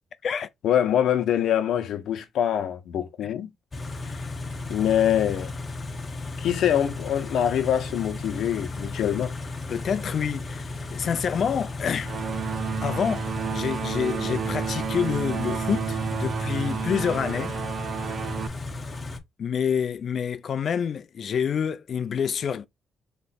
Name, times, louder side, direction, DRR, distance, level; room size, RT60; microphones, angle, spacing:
voice 1, 0.6-3.5 4.7-5.5 6.4-9.4, left 10 dB, 75° left, 0.9 m, -24 dB
Car / Idling, 3.7-19.2, left 3 dB, 30° left, 0.8 m, -35 dB
voice 2, 9.7-12.1 12.8-17.5 19.4-22.7, left 7 dB, 50° left, 0.5 m, -28 dB
sound 1, 12.0-18.5, right 7 dB, 50° right, 0.4 m, -31 dB
3.4 x 3.1 x 4.2 m
cardioid pair, 125°, 0 cm